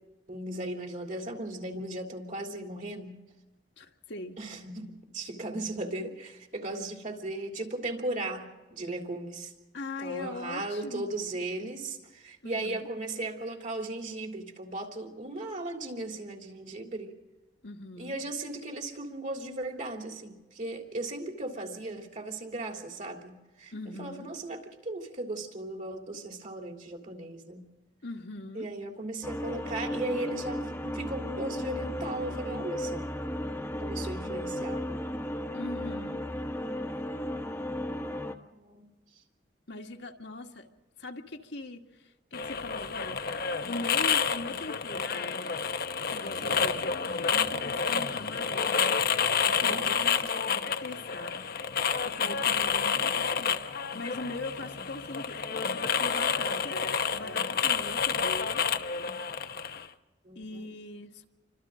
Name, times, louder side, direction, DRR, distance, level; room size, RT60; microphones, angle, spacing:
voice 1, 0.3-3.2 4.4-9.5 10.0-17.2 18.0-23.7 24.0-27.6 28.5-33.0 33.8-35.0 38.0-38.9 46.4-46.8 49.6-50.3 60.2-60.7, right 2 dB, 45° right, 2 dB, 3.4 m, -37 dB
voice 2, 3.8-4.4 9.7-11.1 12.4-12.9 17.6-18.2 23.7-24.3 28.0-28.7 35.5-36.2 39.7-40.7 41.0-43.2 43.6-45.5 46.1-46.9 47.3-48.9 49.4-51.4 52.0-58.7 60.4-61.3, left 2 dB, 70° left, 2 dB, 1.9 m, -41 dB
sound 1, 29.2-38.4, left 1 dB, 10° left, 1.3 m, -35 dB
sound 2, 42.3-59.9, left 6 dB, 55° left, 1.0 m, -29 dB
29.0 x 25.0 x 3.8 m, 1.2 s
head